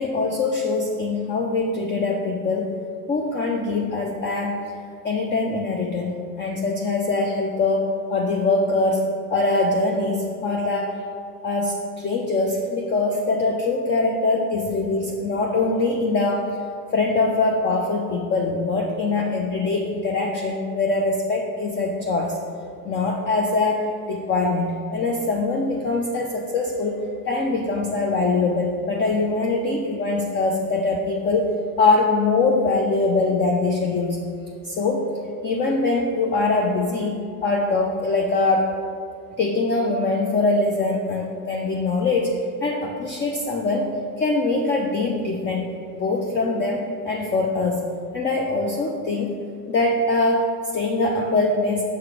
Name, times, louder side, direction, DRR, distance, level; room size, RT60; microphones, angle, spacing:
voice 1, 0.0-2.8 3.1-4.6 5.0-6.1 6.4-9.0 9.3-11.0 11.4-16.5 16.9-22.4 22.8-34.2 34.6-35.1 35.4-38.7 39.4-43.9 44.2-45.7 45.9-47.9 48.1-49.4 49.7-51.8, left 3 dB, 25° left, 1 dB, 0.5 m, -23 dB
6.7 x 4.7 x 4.8 m, 2.2 s
figure-of-eight pair, 70°, 47 cm